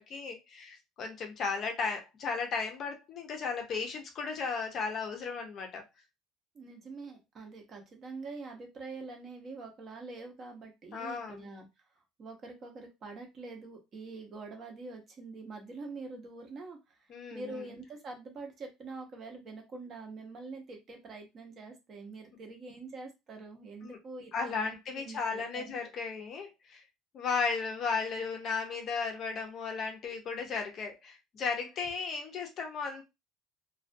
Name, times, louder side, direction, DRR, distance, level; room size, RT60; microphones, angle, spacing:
voice 1, 0.0-5.8 10.9-11.5 17.1-17.6 23.8-24.0 24.3-26.8 27.1-33.0, left 5 dB, 35° left, 0.5 m, -35 dB
voice 2, 6.5-11.7 12.2-17.0 17.3-25.8, right 3 dB, 30° right, 0.6 m, -45 dB
2.3 x 2.2 x 2.5 m
cardioid pair, 165°, 0 cm